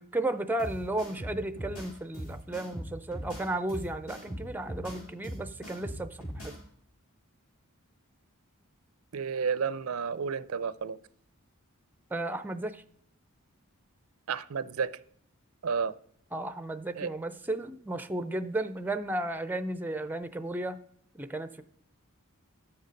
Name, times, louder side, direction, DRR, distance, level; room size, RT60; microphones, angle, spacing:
voice 1, 0.0-6.5 12.1-12.8 16.3-20.8 21.2-21.6, right 1 dB, 10° right, 11 dB, 0.5 m, -34 dB
sound 1, 0.6-6.6, equal, 75° left, 4.5 m, -40 dB
voice 2, 9.1-11.0 14.3-14.9 15.6-15.9 17.0-17.1, right 6 dB, 75° right, 16 dB, 0.5 m, -31 dB
11.5 x 6.6 x 5.2 m, 0.67 s
head